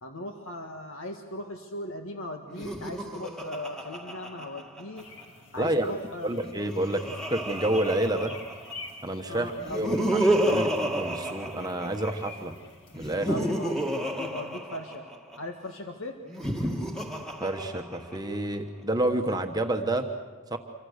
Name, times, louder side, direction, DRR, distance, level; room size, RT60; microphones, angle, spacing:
voice 1, 0.0-5.1 5.5-6.3 9.3-10.0 10.5-10.6 13.3-15.1 15.3-16.2, left 1 dB, 70° left, 4 dB, 1.7 m, -38 dB
Laughter, 2.5-5.2 6.3-8.9 9.6-12.3 12.9-15.4 16.2-18.4, right 1 dB, ahead, 1.8 m, -31 dB
sound 1, 4.9-14.9, left 3 dB, 55° left, 2.7 m, -48 dB
voice 2, 5.5-5.9 6.2-7.0 7.3-8.3 9.0-12.5 12.9-13.3 17.4-20.1 20.5-20.6, right 1 dB, 20° right, 4 dB, 1.2 m, -29 dB
27.5 x 24.5 x 6.6 m, 1.4 s
head